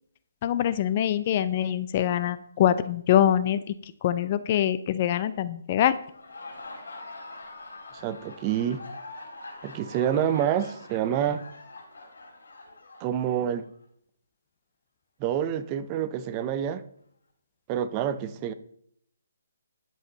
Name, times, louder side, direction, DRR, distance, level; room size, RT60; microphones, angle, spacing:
voice 1, 0.4-3.7 4.0-6.0, left 11 dB, 35° left, 0.5 m, -24 dB
Laughter, 6.0-13.7, left 2 dB, 80° left, 3.4 m, -44 dB
voice 2, 7.9-8.8 9.6-11.5 13.0-13.7 15.2-16.8 17.7-18.5, right 9 dB, 25° right, 0.5 m, -27 dB
10.5 x 7.4 x 4.0 m
hypercardioid pair, 160°, 0 cm